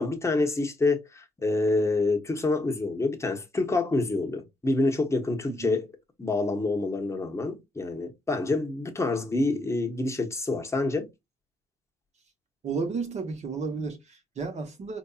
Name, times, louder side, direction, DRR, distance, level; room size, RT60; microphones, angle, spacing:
voice 1, 0.0-5.9 6.2-11.1, left 3 dB, 15° left, 0.9 m, -27 dB
voice 2, 5.5-5.8 9.3-9.6 12.6-15.0, right 4 dB, 40° right, 1.0 m, -33 dB
4.5 x 2.6 x 2.3 m
cardioid pair, 110°, 17 cm